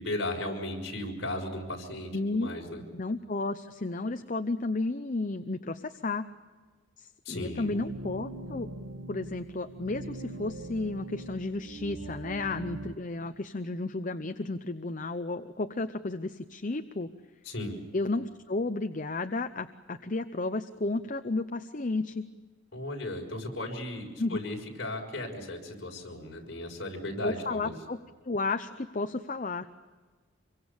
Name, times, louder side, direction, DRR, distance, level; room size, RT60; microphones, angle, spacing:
voice 1, 0.0-2.8 7.2-7.8 17.4-17.8 22.7-27.7, left 1 dB, 55° left, 0 dB, 6.3 m, -36 dB
voice 2, 2.1-2.5 2.9-6.3 7.0-8.7 9.1-17.1 17.9-22.3 24.2-24.4 27.2-28.0 28.2-29.7, left 2 dB, 40° left, 8 dB, 0.7 m, -32 dB
sound 1, 7.6-13.0, right 2 dB, 75° right, 2.0 m, -42 dB
26.5 x 23.5 x 7.2 m, 1.4 s
head